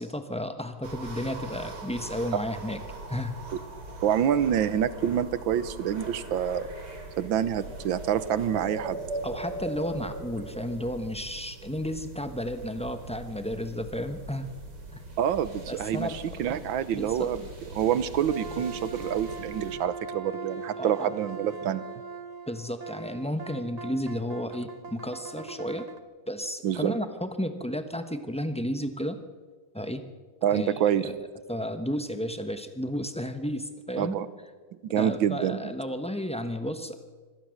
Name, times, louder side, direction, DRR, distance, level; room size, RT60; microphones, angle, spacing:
voice 1, 0.0-2.8 3.1-3.4 9.2-14.5 14.9-15.0 15.7-16.4 16.9-17.3 20.8-21.1 22.5-25.9 26.3-29.2 29.7-30.0 30.5-30.7 31.0-31.2 31.5-34.2 35.0-36.9, equal, 5° left, 8 dB, 0.5 m, -32 dB
sound 1, 0.8-19.8, right 2 dB, 55° right, 3.6 m, -41 dB
voice 2, 4.0-6.7 7.2-9.0 15.2-17.4 17.7-21.9 26.6-26.9 30.4-31.1 34.0-34.3 34.8-35.7, right 9 dB, 75° right, 15 dB, 1.7 m, -27 dB
sound 2, 18.3-26.0, right 5 dB, 40° right, 0.5 m, -40 dB
24.5 x 17.5 x 6.5 m, 1.4 s
omnidirectional pair, 2.2 m